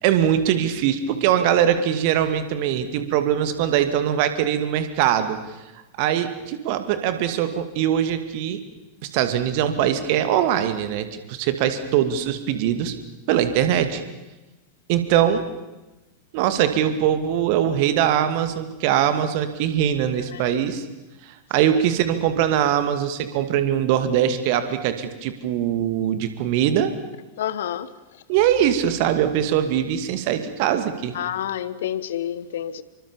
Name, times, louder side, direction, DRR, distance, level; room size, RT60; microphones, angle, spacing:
voice 1, 0.0-5.4 6.0-8.6 9.0-12.9 13.3-14.0 14.9-15.5 16.3-20.8 21.5-26.9 28.3-31.1, right 10 dB, 45° right, 10 dB, 2.3 m, -22 dB
voice 2, 20.3-20.7 21.6-21.8 27.4-27.9 31.1-32.8, left 10 dB, 60° left, 16 dB, 1.2 m, -29 dB
26.5 x 24.0 x 7.2 m, 1.1 s
figure-of-eight pair, 90°, 0 cm